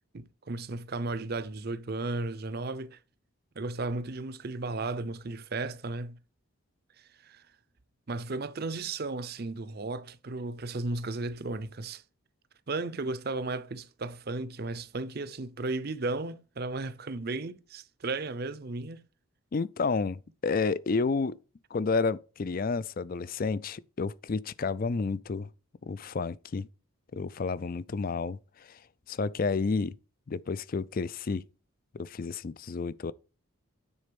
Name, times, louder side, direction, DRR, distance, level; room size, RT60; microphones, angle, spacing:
voice 1, 0.1-3.0 3.6-6.2 7.2-7.4 8.1-12.0 12.7-19.0, right 3 dB, 45° right, 0.6 m, -34 dB
voice 2, 19.5-21.3 21.7-25.5 25.8-26.7 27.1-28.8 29.1-29.9 30.3-31.4 31.9-33.1, left 4 dB, 40° left, 0.4 m, -30 dB
9.7 x 4.1 x 5.2 m
head